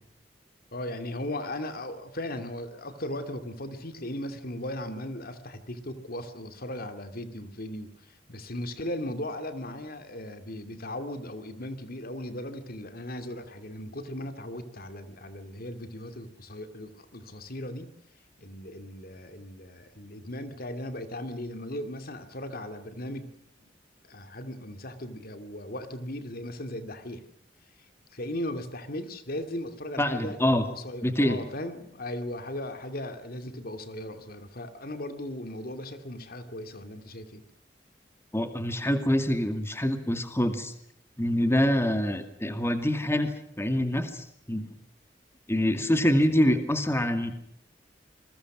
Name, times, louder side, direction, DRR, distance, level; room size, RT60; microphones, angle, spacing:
voice 1, 0.7-17.9 18.4-23.3 24.0-27.2 28.1-30.4 30.7-37.4, left 1 dB, 55° left, 9 dB, 2.5 m, -37 dB
voice 2, 30.0-30.7 31.0-31.4 38.3-40.7 41.2-44.7 45.5-47.4, left 1 dB, 15° left, 8 dB, 2.3 m, -25 dB
28.0 x 22.0 x 6.2 m, 0.73 s
head